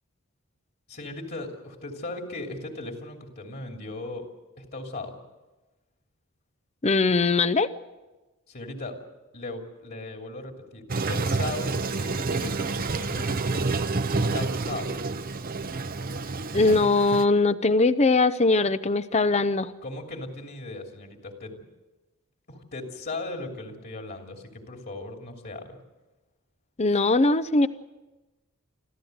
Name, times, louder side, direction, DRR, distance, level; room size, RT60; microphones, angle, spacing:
voice 1, 0.9-4.3 4.6-5.1 8.5-9.0 9.3-13.7 14.1-15.0 19.8-21.6 22.5-25.8, left 2 dB, 50° left, 2 dB, 3.0 m, -37 dB
voice 2, 6.8-7.7 16.5-19.7 26.8-27.7, left 3 dB, 30° left, 14 dB, 0.6 m, -21 dB
Toilet flush, 10.9-17.2, right 3 dB, 45° right, 0.8 m, -28 dB
26.5 x 15.0 x 8.0 m, 1.1 s
head